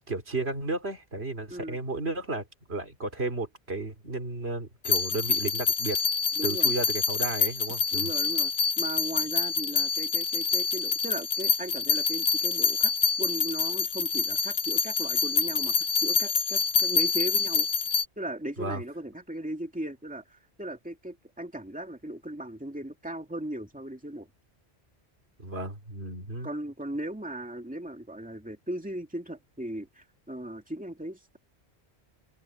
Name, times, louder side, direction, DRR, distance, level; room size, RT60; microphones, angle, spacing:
voice 1, 0.0-6.0 6.4-8.1 18.6-18.8 25.4-26.5, right 2 dB, 75° right, 3.2 m, -33 dB
sound 1, 4.8-18.0, left 5 dB, 80° left, 1.2 m, -26 dB
voice 2, 6.4-6.7 7.9-12.9 13.2-17.7 18.2-24.3 26.4-31.4, right 1 dB, 5° right, 2.5 m, -37 dB
omnidirectional pair, 1.1 m